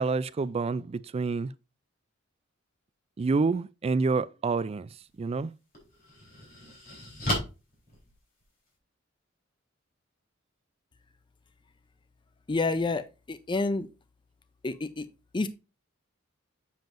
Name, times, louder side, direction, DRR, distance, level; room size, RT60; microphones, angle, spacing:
voice 1, 0.0-1.5 3.2-4.9 5.2-5.5, right 4 dB, 30° right, 0.3 m, -28 dB
sound 1, 5.0-5.2 5.7-8.8, equal, 45° left, 3.8 m, -35 dB
voice 2, 12.5-13.9 14.6-15.1 15.3-15.5, left 3 dB, 25° left, 0.5 m, -29 dB
7.6 x 7.1 x 2.6 m
head